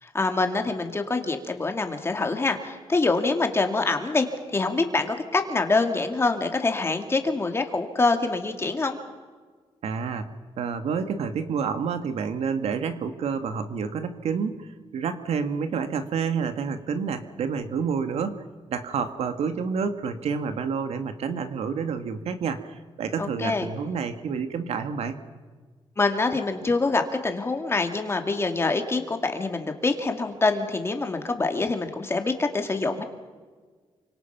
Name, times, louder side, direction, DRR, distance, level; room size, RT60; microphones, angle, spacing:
voice 1, 0.0-4.3 4.5-9.0 23.2-23.7 26.0-33.0, left 3 dB, 25° left, 5 dB, 2.5 m, -25 dB
voice 2, 9.8-10.3 10.6-18.4 18.7-25.2, right 6 dB, 85° right, 9 dB, 1.8 m, -29 dB
28.0 x 26.0 x 5.9 m, 1.5 s
wide cardioid pair, 145°, 10 cm